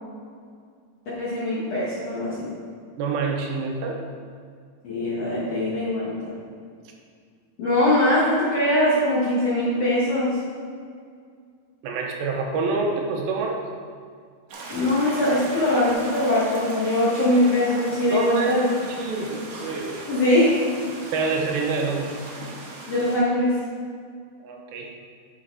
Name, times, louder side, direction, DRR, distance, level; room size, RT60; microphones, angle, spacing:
voice 1, 1.2-2.5 4.8-6.3 7.6-10.4 14.7-18.7 19.2-19.3 20.1-20.5 22.9-23.6, left 1 dB, 60° left, -8 dB, 1.7 m, -22 dB
voice 2, 3.0-4.0 11.8-13.6 18.1-18.6 18.9-19.4 21.1-22.1 24.4-24.9, right 4 dB, 80° right, 1 dB, 2.5 m, -26 dB
sound 1, 14.5-23.2, right 2 dB, 65° right, 2.1 m, -37 dB
10.5 x 4.2 x 4.0 m, 2.1 s
omnidirectional pair, 4.3 m